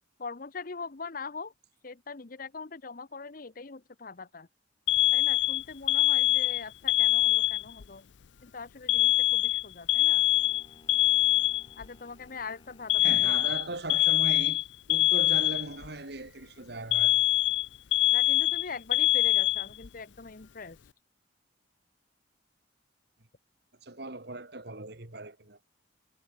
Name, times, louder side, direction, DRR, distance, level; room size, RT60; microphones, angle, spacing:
voice 1, 0.2-1.5 1.8-4.5 5.1-8.0 8.4-10.3 11.8-13.4 18.1-20.8, left 4 dB, 45° left, 0.8 m, -42 dB
Alarm, 4.9-7.8 8.9-11.9 12.9-15.9 16.9-19.9, left 16 dB, 70° left, 0.5 m, -24 dB
sound 1, 10.3-13.2, left 1 dB, 25° left, 5.6 m, -59 dB
voice 2, 13.0-17.3 23.8-25.6, right 2 dB, 55° right, 2.3 m, -39 dB
head